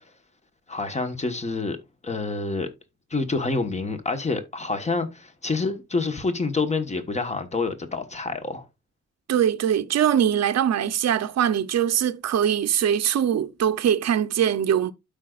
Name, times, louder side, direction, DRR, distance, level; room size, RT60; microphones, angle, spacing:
voice 1, 0.7-1.8 2.0-2.7 3.1-8.6, left 3 dB, 25° left, 1.2 m, -27 dB
voice 2, 9.3-14.9, right 9 dB, 60° right, 0.7 m, -22 dB
12.5 x 5.1 x 2.4 m
wide cardioid pair, 155°, 29 cm